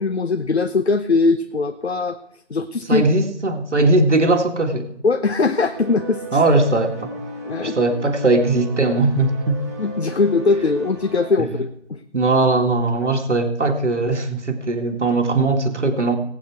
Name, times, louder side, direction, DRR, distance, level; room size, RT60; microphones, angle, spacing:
voice 1, 0.0-2.2 2.5-3.1 5.0-6.4 7.4-7.8 9.8-12.0, left 4 dB, 65° left, 9 dB, 1.0 m, -20 dB
voice 2, 2.9-4.9 6.3-7.1 7.6-9.6 11.4-11.5 12.1-16.2, right 2 dB, 85° right, 5 dB, 1.9 m, -19 dB
sound 1, 5.7-11.3, right 2 dB, 15° right, 1.5 m, -36 dB
19.0 x 8.6 x 4.7 m, 0.72 s
figure-of-eight pair, 170°, 34 cm